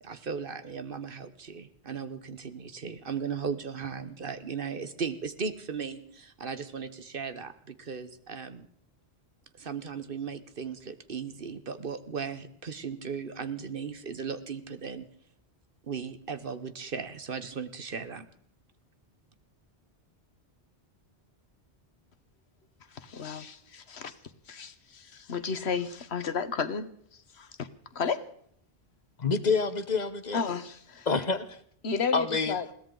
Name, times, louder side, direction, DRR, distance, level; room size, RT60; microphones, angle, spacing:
voice 1, 0.0-8.7 9.6-15.0 15.8-18.2, right 6 dB, 55° right, 11 dB, 1.2 m, -37 dB
voice 2, 22.9-24.1 24.5-27.7 27.9-28.2 30.3-31.1 31.8-32.7, left 5 dB, 80° left, 12 dB, 1.4 m, -33 dB
voice 3, 29.2-30.4 31.1-31.6 32.1-32.5, left 4 dB, 45° left, 12 dB, 1.1 m, -27 dB
21.5 x 16.5 x 3.9 m, 0.63 s
omnidirectional pair, 1.1 m